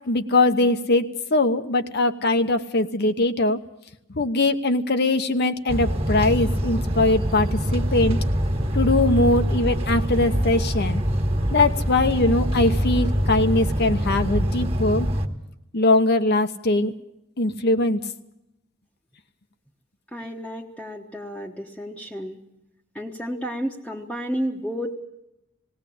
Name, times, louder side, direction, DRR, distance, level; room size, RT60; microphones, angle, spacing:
voice 1, 0.1-3.6 4.1-8.2 8.7-11.0 11.5-15.1 15.7-16.9 17.4-18.0, left 2 dB, 55° left, 8 dB, 1.0 m, -21 dB
sound 1, 5.7-15.3, equal, 30° right, 1.6 m, -24 dB
voice 2, 20.1-22.4 22.9-24.9, equal, 5° left, -3 dB, 1.1 m, -31 dB
18.5 x 18.0 x 8.5 m, 0.88 s
head